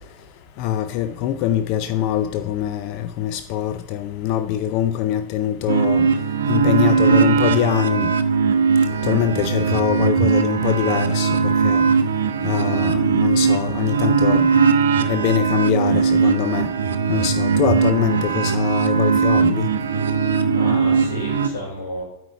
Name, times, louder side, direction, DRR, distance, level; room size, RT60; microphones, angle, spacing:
voice 1, 0.6-6.1 6.5-8.1 9.0-11.8 12.4-14.5 15.1-16.7 17.1-19.7, left 10 dB, 45° left, 0.3 m, -23 dB
sound 1, 5.7-21.5, right 5 dB, 65° right, 0.5 m, -19 dB
voice 2, 9.0-9.4 17.5-18.0 20.4-22.0, left 1 dB, 60° left, 3.1 m, -32 dB
8.8 x 4.3 x 5.7 m
figure-of-eight pair, 90°, 0 cm